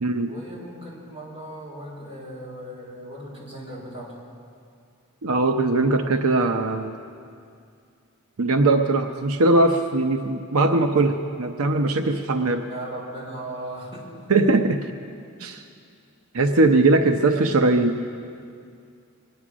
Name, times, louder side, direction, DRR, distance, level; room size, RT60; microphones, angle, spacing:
voice 1, 0.3-4.1 12.7-14.2 17.3-17.5, right 1 dB, 25° right, -6 dB, 5.1 m, -37 dB
voice 2, 5.2-7.0 8.4-12.6 14.3-14.9 15.4-15.6 16.3-18.0, right 2 dB, 90° right, 6 dB, 0.7 m, -20 dB
23.0 x 10.0 x 6.2 m, 2.4 s
head